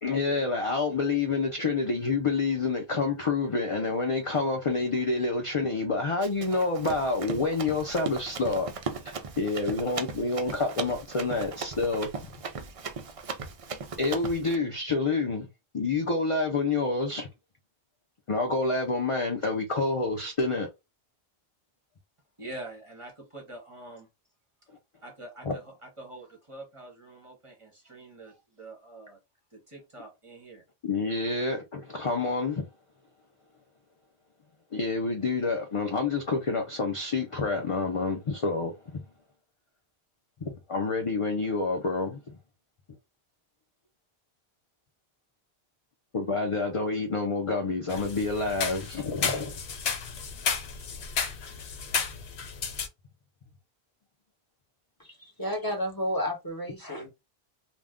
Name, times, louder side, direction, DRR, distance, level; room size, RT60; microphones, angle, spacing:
voice 1, 0.0-12.1 14.0-15.5 15.7-17.3 18.3-20.7 25.4-25.5 30.8-32.7 34.7-39.0 40.4-42.2 46.1-49.6, left 3 dB, 45° left, 0.4 m, -28 dB
Run, 6.2-14.6, right 5 dB, 60° right, 0.3 m, -37 dB
voice 2, 22.4-24.1 25.0-29.2 29.5-30.6 31.1-31.3, right 2 dB, 30° right, 0.8 m, -45 dB
sound 1, 47.9-52.9, left 6 dB, 75° left, 0.9 m, -33 dB
voice 3, 55.0-57.1, equal, 20° left, 0.9 m, -32 dB
2.5 x 2.2 x 3.4 m
omnidirectional pair, 1.1 m